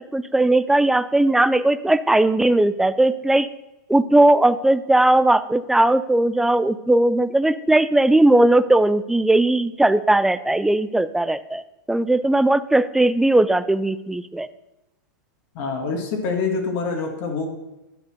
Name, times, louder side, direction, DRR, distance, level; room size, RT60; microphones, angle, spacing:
voice 1, 0.0-3.5 3.9-11.6 11.9-14.5, right 1 dB, 5° right, 14 dB, 0.4 m, -18 dB
voice 2, 15.5-17.5, left 4 dB, 50° left, 2 dB, 2.0 m, -25 dB
10.5 x 4.2 x 6.5 m, 0.96 s
hypercardioid pair, 120°, 10 cm